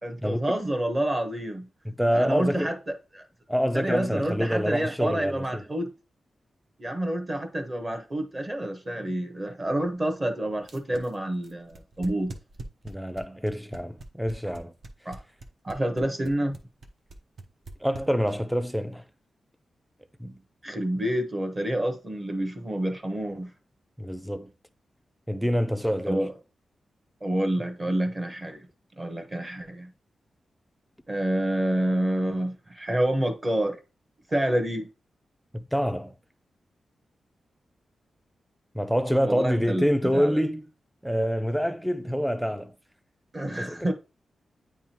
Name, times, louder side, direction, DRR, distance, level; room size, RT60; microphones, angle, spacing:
voice 1, 0.0-1.7 2.1-2.8 3.1-3.2 3.7-5.9 6.8-12.3 15.0-15.2 15.6-16.6 20.6-23.5 26.0-26.3 27.2-28.7 29.0-29.9 31.1-33.8 34.3-34.9 39.2-40.4 43.3-43.9, right 1 dB, 25° right, 1.2 m, -28 dB
voice 2, 1.9-2.7 3.5-5.6 12.8-14.7 17.8-19.0 20.2-20.4 24.0-24.5 25.3-26.3 35.5-36.1 38.7-40.7 41.0-42.7 43.6-43.9, equal, ahead, 0.4 m, -26 dB
sound 1, 10.6-18.5, right 3 dB, 55° right, 0.8 m, -43 dB
9.1 x 3.6 x 2.9 m
wide cardioid pair, 125°, 0 cm